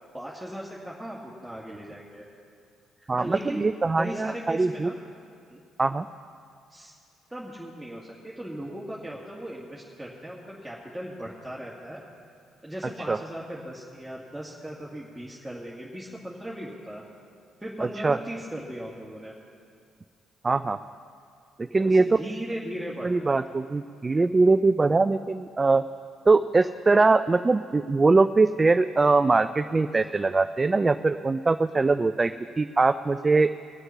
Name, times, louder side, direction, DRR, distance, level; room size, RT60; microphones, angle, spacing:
voice 1, 0.1-2.3 3.0-3.6 4.0-5.0 5.5-5.6 6.7-6.9 7.3-12.0 12.6-17.0 17.6-19.3 21.8-23.4, equal, 5° right, -5 dB, 2.1 m, -38 dB
voice 2, 3.1-4.9 5.8-6.1 13.1-13.2 17.8-18.2 20.4-20.8 21.6-22.1 23.0-25.8 26.3-33.5, right 3 dB, 30° right, 12 dB, 0.4 m, -22 dB
20.5 x 7.9 x 5.7 m, 2.3 s
hypercardioid pair, 45°, 0 cm